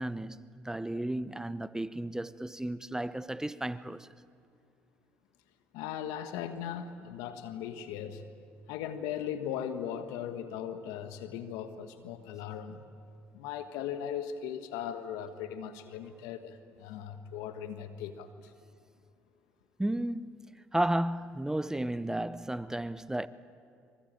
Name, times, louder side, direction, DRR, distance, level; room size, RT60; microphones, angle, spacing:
voice 1, 0.0-4.1 19.8-23.3, right 1 dB, 10° right, 0.9 m, -33 dB
voice 2, 5.7-8.2 8.7-12.8 13.3-18.5, left 9 dB, 85° left, 1.5 m, -38 dB
25.0 x 24.5 x 9.0 m
supercardioid pair, 65°, 6 cm